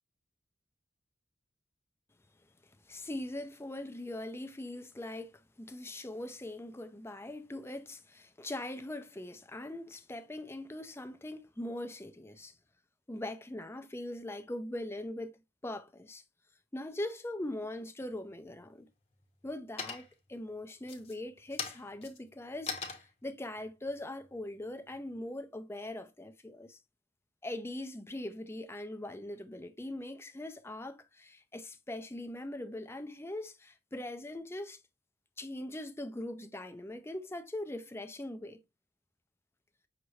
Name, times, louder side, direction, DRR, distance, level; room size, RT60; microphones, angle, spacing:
voice 1, 2.6-12.5 13.1-16.2 16.7-18.9 19.4-26.8 27.4-34.8 35.4-38.6, left 1 dB, 15° left, 0.5 m, -41 dB
sound 1, 18.1-18.7 19.1-19.5 19.8-20.3 20.8-25.2, left 5 dB, 35° left, 0.9 m, -42 dB
5.9 x 2.6 x 3.2 m
head